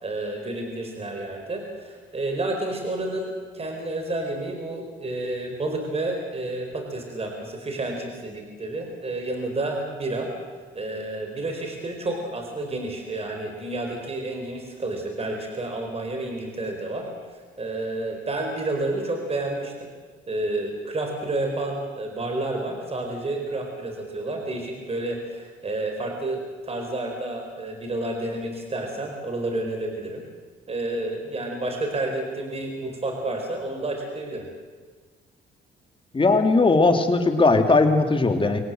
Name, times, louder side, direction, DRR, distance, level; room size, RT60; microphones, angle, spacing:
voice 1, 0.0-10.3 10.7-17.1 17.6-19.9 20.3-30.2 30.7-34.5, right 2 dB, 30° right, 3 dB, 4.4 m, -30 dB
voice 2, 36.1-38.6, left 3 dB, 25° left, 6 dB, 2.7 m, -18 dB
24.5 x 18.0 x 7.8 m, 1.5 s
cardioid pair, 90°, 20 cm